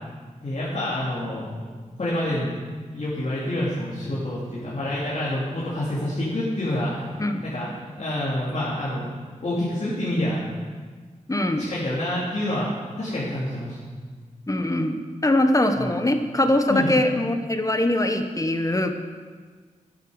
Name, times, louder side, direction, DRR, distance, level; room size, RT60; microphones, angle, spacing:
voice 1, 0.4-1.5 2.0-2.5 2.9-7.1 7.4-7.7 7.9-9.1 9.4-10.4 11.6-12.7 13.0-13.8 15.7-15.9 16.7-16.9, left 1 dB, 55° left, -8 dB, 2.9 m, -27 dB
voice 2, 11.3-11.6 14.5-18.9, left 1 dB, 25° left, 6 dB, 1.1 m, -22 dB
11.5 x 9.4 x 5.1 m, 1.5 s
cardioid pair, 55°, 14 cm